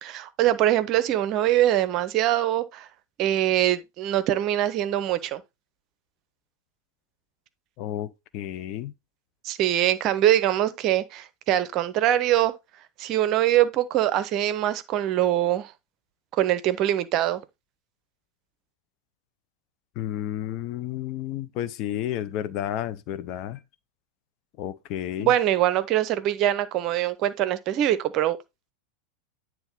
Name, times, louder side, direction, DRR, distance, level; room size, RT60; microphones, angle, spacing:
voice 1, 0.0-2.9 3.2-5.4 9.4-12.5 13.0-15.7 16.4-17.4 25.2-28.4, right 12 dB, 35° right, 0.7 m, -23 dB
voice 2, 7.8-8.9 20.0-23.6 24.6-25.3, left 11 dB, 40° left, 0.6 m, -31 dB
9.2 x 3.1 x 5.2 m
figure-of-eight pair, 90°, 0 cm